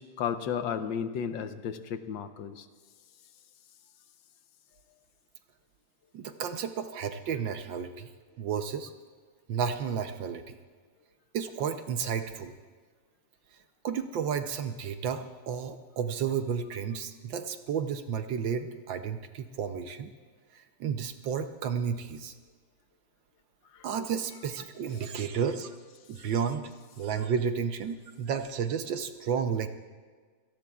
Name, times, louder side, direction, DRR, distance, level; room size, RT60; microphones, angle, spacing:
voice 1, 0.0-2.5, left 7 dB, 65° left, 9 dB, 1.4 m, -33 dB
voice 2, 6.1-8.1 8.4-8.9 9.5-10.5 11.3-12.5 13.8-20.1 20.8-22.3 23.8-25.7 26.1-26.6 27.0-29.7, right 7 dB, 65° right, 8 dB, 1.4 m, -32 dB
28.0 x 18.0 x 2.4 m, 1.5 s
omnidirectional pair, 2.4 m